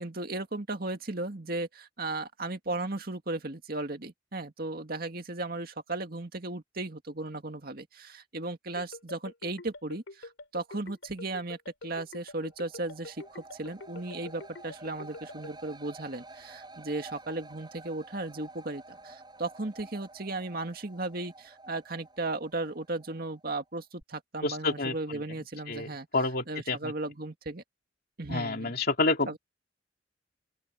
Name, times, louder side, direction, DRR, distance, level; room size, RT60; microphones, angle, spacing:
voice 1, 0.0-11.6 11.8-26.1 26.5-27.6 28.2-28.7 29.3-29.4, right 2 dB, 50° right, 2.1 m, -36 dB
sound 1, 8.8-15.5, left 2 dB, 85° left, 4.4 m, -45 dB
sound 2, 12.2-23.7 24.0-24.1, right 2 dB, 25° right, 7.4 m, -51 dB
voice 2, 24.4-25.2 25.7-25.9 26.1-26.9 28.3-29.4, left 3 dB, 55° left, 2.7 m, -29 dB
open air
head